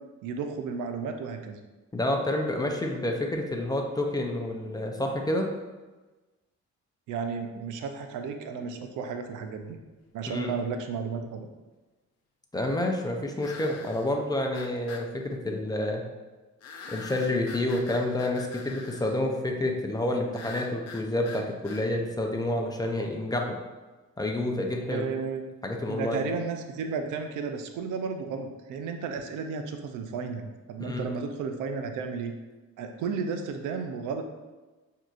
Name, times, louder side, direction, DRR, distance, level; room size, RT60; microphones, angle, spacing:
voice 1, 0.2-1.6 7.1-9.8 10.1-11.5 24.9-25.4 25.8-32.4 32.8-34.2, right 5 dB, 85° right, 6 dB, 0.5 m, -33 dB
voice 2, 1.9-5.5 10.3-10.5 12.5-16.0 16.9-23.5 24.2-25.1 25.6-26.2 30.8-31.1, left 1 dB, 15° left, 1 dB, 0.6 m, -29 dB
sound 1, 9.8-9.9 13.4-14.1 14.5-15.1 16.6-19.2 20.3-21.9, left 4 dB, 55° left, 0.6 m, -43 dB
6.0 x 2.7 x 2.5 m, 1.2 s
cardioid pair, 90°, 30 cm